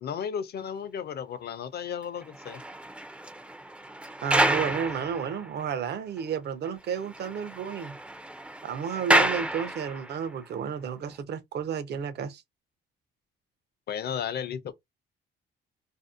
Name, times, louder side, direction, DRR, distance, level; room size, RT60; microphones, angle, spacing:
voice 1, 0.0-2.6 13.9-14.7, left 8 dB, 55° left, 0.5 m, -34 dB
sound 1, 2.2-5.9 6.2-6.3 6.6-6.7 7.0-10.3 11.0-11.2, right 1 dB, 5° right, 0.3 m, -29 dB
voice 2, 4.2-8.0 8.6-12.4, right 7 dB, 60° right, 0.5 m, -32 dB
2.6 x 2.0 x 2.4 m
cardioid pair, 90°, 20 cm